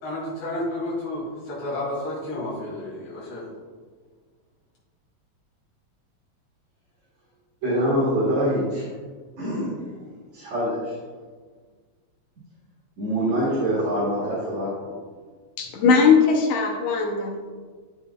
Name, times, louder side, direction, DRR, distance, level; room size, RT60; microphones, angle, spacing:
voice 1, 0.0-3.5, left 1 dB, 50° left, -7 dB, 3.1 m, -31 dB
voice 2, 7.6-8.9 9.4-9.9 10.3-10.9 13.0-14.9, equal, 65° right, -7 dB, 2.9 m, -24 dB
voice 3, 15.6-17.6, left 5 dB, 70° left, 2 dB, 1.7 m, -19 dB
10.5 x 6.9 x 2.3 m, 1.5 s
omnidirectional pair, 3.4 m